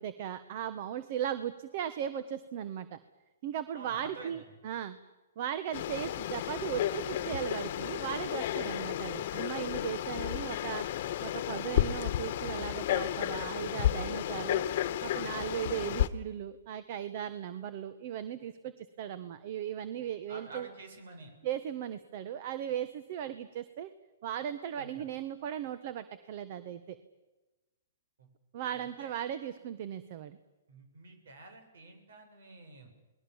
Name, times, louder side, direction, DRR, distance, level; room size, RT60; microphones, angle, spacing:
voice 1, 0.0-3.0 3.4-5.0 5.4-10.8 11.2-14.6 15.0-20.7 21.4-23.9 24.2-27.0 28.5-30.4, right 10 dB, 45° right, 13 dB, 1.4 m, -37 dB
voice 2, 3.7-4.5 20.3-21.3 24.8-25.0 28.2-28.3 28.6-29.2 30.7-32.9, right 2 dB, 75° right, 6 dB, 7.7 m, -49 dB
Frog, 5.7-16.1, left 12 dB, 50° left, 1.3 m, -32 dB
29.5 x 20.5 x 7.3 m, 1.1 s
hypercardioid pair, 150°, 0 cm